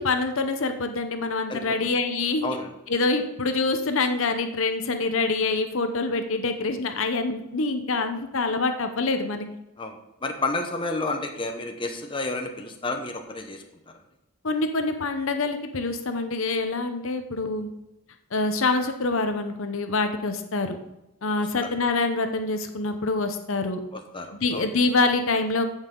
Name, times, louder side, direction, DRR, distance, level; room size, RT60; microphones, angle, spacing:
voice 1, 0.0-2.5 2.9-9.5 14.4-17.7 18.3-20.8 21.2-23.8 24.4-25.6, left 3 dB, 65° left, 7 dB, 0.8 m, -25 dB
voice 2, 10.2-13.6 24.1-24.7, left 2 dB, 25° left, 4 dB, 0.9 m, -30 dB
15.5 x 5.6 x 3.8 m, 0.94 s
head